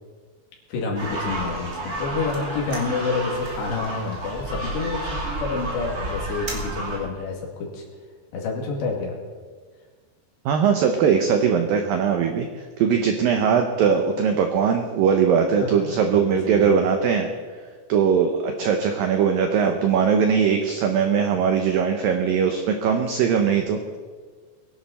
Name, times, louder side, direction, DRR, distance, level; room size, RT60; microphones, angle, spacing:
voice 1, 0.7-7.8 8.3-9.1 15.6-16.8, left 4 dB, 70° left, -2 dB, 4.6 m, -28 dB
sound 1, 0.9-7.0, right 1 dB, 25° right, 2.5 m, -31 dB
voice 2, 10.5-12.5 12.8-17.3 17.9-23.8, right 7 dB, 85° right, 5 dB, 2.0 m, -20 dB
22.0 x 11.0 x 4.3 m, 1.6 s
omnidirectional pair, 5.4 m